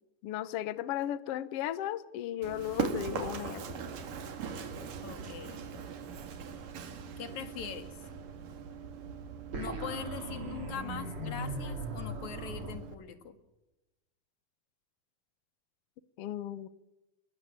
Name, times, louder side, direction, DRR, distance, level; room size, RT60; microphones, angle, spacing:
voice 1, 0.2-3.8 16.2-16.7, left 11 dB, 75° left, 14 dB, 1.3 m, -35 dB
Run, 2.4-13.0, right 7 dB, 70° right, 3.7 m, -41 dB
voice 2, 5.0-5.6 7.2-7.9 9.5-13.4, left 8 dB, 60° left, 9 dB, 3.2 m, -42 dB
sound 1, 9.5-12.7, right 2 dB, 40° right, 3.8 m, -39 dB
22.0 x 19.5 x 8.9 m, 0.99 s
omnidirectional pair, 4.0 m